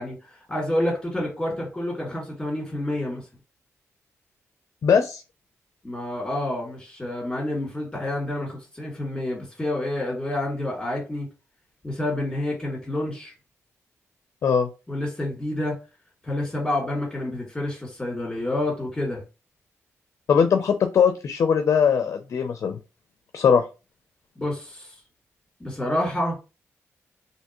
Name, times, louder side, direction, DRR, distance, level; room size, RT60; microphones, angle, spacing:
voice 1, 0.0-3.2 5.8-11.3 11.8-13.3 14.9-15.8 16.2-19.2 24.4-24.9 25.6-26.3, left 1 dB, 10° left, 2.0 m, -28 dB
voice 2, 4.8-5.2 14.4-14.7 20.3-22.8 23.3-23.6, left 7 dB, 60° left, 0.4 m, -20 dB
3.3 x 2.7 x 2.9 m
cardioid pair, 90°, 5 cm